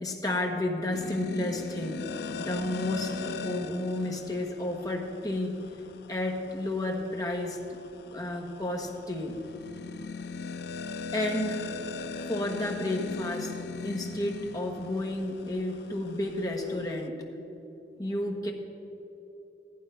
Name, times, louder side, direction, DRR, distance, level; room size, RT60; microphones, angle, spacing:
voice 1, 0.0-2.1 2.4-5.6 6.1-7.8 8.1-9.4 11.1-11.8 12.3-13.5 13.8-17.2 18.0-18.5, left 1 dB, 20° left, 1 dB, 1.3 m, -31 dB
sound 1, 0.9-17.1, left 4 dB, 60° left, 0.4 m, -40 dB
14.5 x 11.5 x 5.7 m, 3.0 s
head